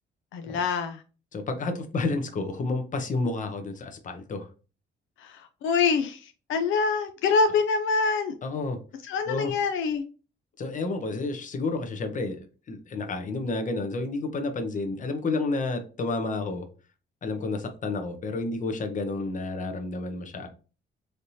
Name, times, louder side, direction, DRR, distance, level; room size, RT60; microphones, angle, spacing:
voice 1, 0.3-1.0 5.2-8.3 9.1-10.0, left 5 dB, 80° left, 0.4 m, -25 dB
voice 2, 1.3-4.5 8.4-8.8 9.3-9.5 10.6-16.7 17.2-20.5, left 3 dB, 40° left, 0.7 m, -30 dB
3.2 x 2.8 x 2.7 m
cardioid pair, 90°, 20 cm